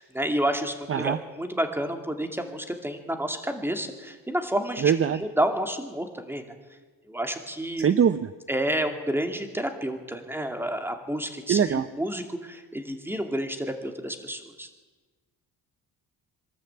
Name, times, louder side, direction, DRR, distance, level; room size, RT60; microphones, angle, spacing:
voice 1, 0.0-6.4 7.1-7.9 8.5-14.7, right 1 dB, 5° right, 6 dB, 2.4 m, -30 dB
voice 2, 4.8-5.2 7.8-8.3 11.5-11.9, right 8 dB, 35° right, 12 dB, 0.7 m, -22 dB
23.0 x 13.0 x 8.7 m, 1.3 s
cardioid pair, 105°, 37 cm